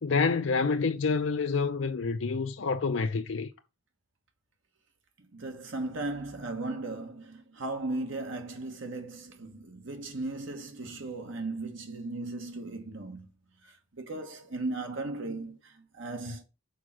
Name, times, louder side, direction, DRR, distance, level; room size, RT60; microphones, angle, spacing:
voice 1, 0.0-3.5, left 4 dB, 65° left, 0.5 m, -28 dB
voice 2, 5.3-13.3 13.6-16.4, right 2 dB, 70° right, 1.3 m, -37 dB
6.4 x 4.4 x 6.3 m
head